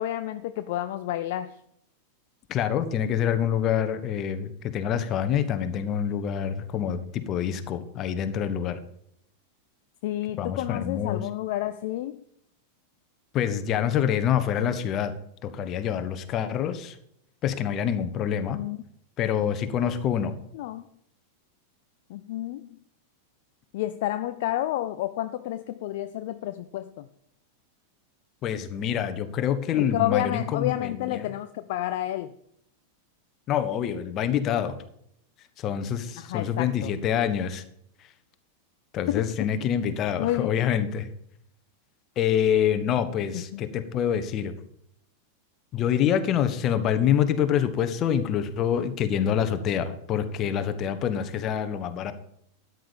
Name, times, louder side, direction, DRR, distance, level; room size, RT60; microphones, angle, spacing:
voice 1, 0.0-1.5 10.0-12.2 18.3-18.8 20.5-20.8 22.1-22.7 23.7-27.1 29.8-32.3 36.2-36.9 39.1-39.3 39.9-40.5 43.3-43.6, left 14 dB, 50° left, 11 dB, 0.5 m, -30 dB
voice 2, 2.5-8.8 10.4-11.2 13.3-15.1 15.4-16.9 17.4-18.6 19.2-20.3 28.4-31.3 33.5-34.8 35.6-37.6 38.9-41.1 42.2-44.5 45.7-52.1, left 9 dB, 35° left, 10 dB, 1.3 m, -26 dB
13.0 x 9.5 x 5.2 m, 0.72 s
figure-of-eight pair, 90°, 0 cm